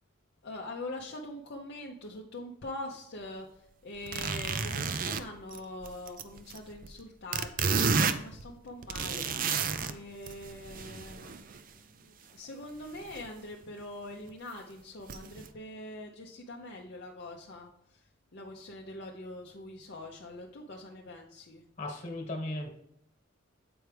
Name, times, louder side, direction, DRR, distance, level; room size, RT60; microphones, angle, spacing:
voice 1, 0.4-3.5 3.8-9.3 9.8-11.4 11.7-17.7 18.3-21.6, left 2 dB, 55° left, 0 dB, 0.6 m, -43 dB
sound 1, 4.0-7.0 7.3-9.9 10.3-11.6 12.9-13.3 13.6-13.7 14.3-14.4 15.1-15.5, right 5 dB, 40° right, 0.4 m, -31 dB
voice 2, 21.8-22.7, left 1 dB, 35° left, 3 dB, 1.4 m, -36 dB
7.8 x 4.6 x 3.3 m, 0.79 s
head